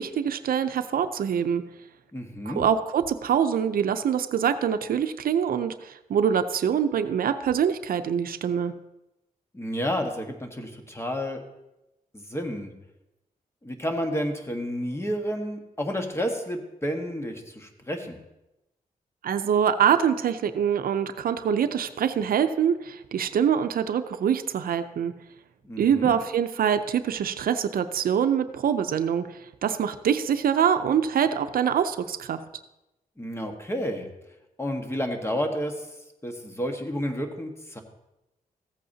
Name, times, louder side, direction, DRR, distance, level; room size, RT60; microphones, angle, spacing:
voice 1, 0.0-1.6 2.5-8.7 19.2-25.1 25.8-32.4, right 8 dB, 80° right, 10 dB, 0.5 m, -24 dB
voice 2, 2.1-2.6 9.5-11.4 12.1-12.7 13.6-18.2 25.6-26.2 33.2-34.1 34.6-35.9 36.2-37.8, equal, 20° left, 4 dB, 1.4 m, -30 dB
15.0 x 8.4 x 2.8 m, 0.95 s
cardioid pair, 80°, 15 cm